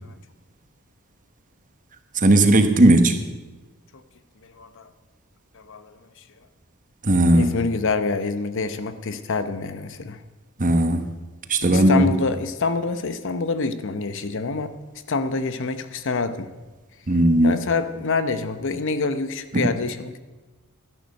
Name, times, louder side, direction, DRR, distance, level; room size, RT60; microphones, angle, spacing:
voice 1, 2.2-3.2 7.0-7.5 10.6-11.1 11.5-12.1 17.1-17.5 19.5-19.7, right 1 dB, 35° right, 8 dB, 1.1 m, -17 dB
voice 2, 4.6-4.9 5.5-5.9 7.3-10.2 11.7-14.7 15.1-16.5 17.4-20.2, left 3 dB, 60° left, 11 dB, 0.8 m, -26 dB
12.5 x 11.0 x 6.5 m, 1.2 s
head